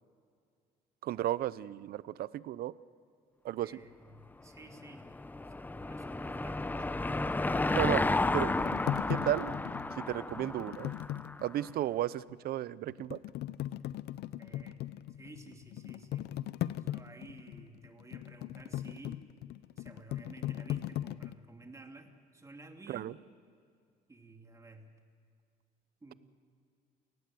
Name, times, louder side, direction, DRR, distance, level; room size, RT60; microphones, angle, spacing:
voice 1, 1.0-2.7 3.4-3.7 7.7-8.0 8.3-8.5 9.1-9.5 10.0-10.9 11.4-13.2 22.9-23.1, right 13 dB, 65° right, 18 dB, 0.7 m, -33 dB
voice 2, 3.6-5.1 5.5-7.1 14.4-14.8 15.2-16.3 16.6-19.2 19.8-23.2 24.1-24.9 26.0-26.1, right 2 dB, 20° right, 4 dB, 2.7 m, -53 dB
Car passing by / Engine, 4.7-11.5, left 2 dB, 10° left, 0.7 m, -32 dB
sound 1, 7.8-11.8 12.3-12.4 12.9-21.3, left 13 dB, 75° left, 0.7 m, -39 dB
29.0 x 18.5 x 7.7 m, 2.3 s
cardioid pair, 110°, 17 cm